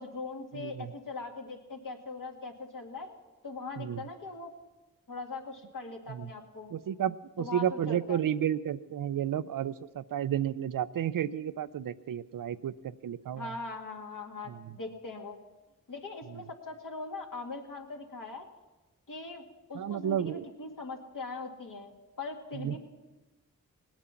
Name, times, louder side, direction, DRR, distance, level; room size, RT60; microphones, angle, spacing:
voice 1, 0.0-3.1 3.4-4.5 5.1-6.7 7.4-8.2 13.4-15.4 15.9-18.5 19.1-22.8, left 3 dB, 65° left, 1 dB, 2.1 m, -41 dB
voice 2, 0.5-0.9 3.8-4.0 6.1-6.3 6.7-13.5 14.5-14.8 16.3-16.4 19.7-20.5 22.5-22.8, right 10 dB, 70° right, 14 dB, 0.5 m, -32 dB
19.0 x 8.8 x 5.8 m, 1.1 s
cardioid pair, 55°, 34 cm